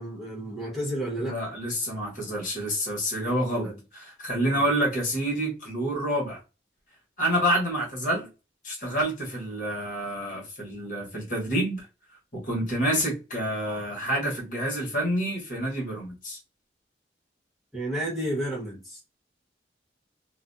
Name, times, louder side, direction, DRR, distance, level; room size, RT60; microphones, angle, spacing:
voice 1, 0.0-1.4 3.2-3.8 4.4-4.6 17.7-19.2, right 1 dB, ahead, 1.0 m, -32 dB
voice 2, 1.2-6.4 7.2-8.3 8.6-11.8 12.3-16.4, right 1 dB, 45° left, 1.1 m, -28 dB
2.4 x 2.2 x 2.5 m
head